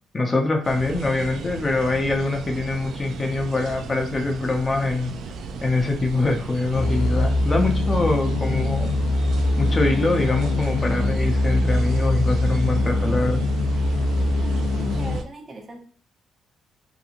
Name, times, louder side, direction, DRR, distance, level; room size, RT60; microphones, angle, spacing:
voice 1, 0.1-5.1 5.6-8.9 9.6-13.4, left 2 dB, 25° left, 3 dB, 0.6 m, -24 dB
sound 1, 0.6-15.2, right 4 dB, 75° right, 0.3 m, -35 dB
sound 2, 6.7-15.2, left 2 dB, 75° left, 0.5 m, -22 dB
voice 2, 14.4-15.8, right 2 dB, 35° right, 3 dB, 0.7 m, -40 dB
2.9 x 2.6 x 2.5 m, 0.43 s
cardioid pair, 90°, 0 cm